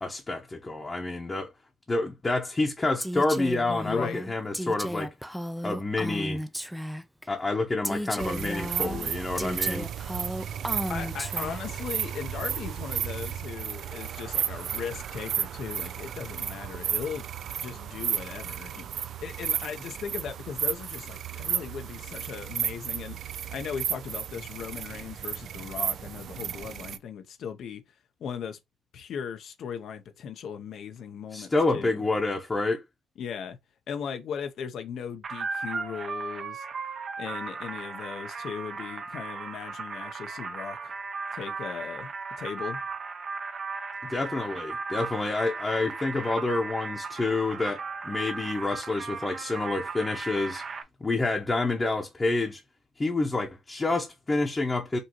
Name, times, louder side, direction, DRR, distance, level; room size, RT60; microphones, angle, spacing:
voice 1, 0.0-1.5 1.9-5.1 5.6-6.4 7.3-9.9 31.3-32.8 44.0-50.6 51.0-52.6 53.0-55.0, left 2 dB, 25° left, 0.8 m, -28 dB
Female speech woman speaking, 3.0-7.2 7.8-11.8, equal, ahead, 0.4 m, -34 dB
voice 2, 3.8-4.2 10.7-17.2 17.6-18.9 19.2-27.8 28.2-28.6 28.9-32.0 33.2-33.6 33.9-36.7 37.2-40.9 41.3-42.1 42.4-42.8, left 7 dB, 70° left, 0.7 m, -38 dB
sound 1, 8.2-27.0, right 9 dB, 70° right, 0.3 m, -33 dB
sound 2, 35.2-50.8, right 4 dB, 50° right, 0.7 m, -36 dB
5.3 x 2.7 x 2.9 m
cardioid pair, 90°, 0 cm